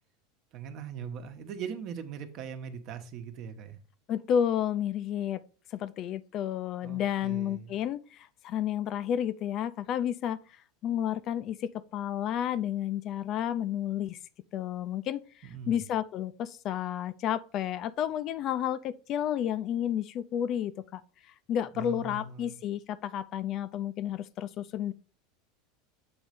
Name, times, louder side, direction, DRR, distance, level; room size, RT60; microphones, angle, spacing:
voice 1, 0.5-3.8 6.8-7.7 15.4-15.8 21.7-22.6, right 7 dB, 50° right, 1.0 m, -40 dB
voice 2, 4.1-5.4 5.7-10.4 10.8-14.2 14.5-15.2 15.7-21.0 21.5-24.9, left 10 dB, 45° left, 0.4 m, -31 dB
7.9 x 3.1 x 5.2 m
supercardioid pair, 125°, 0 cm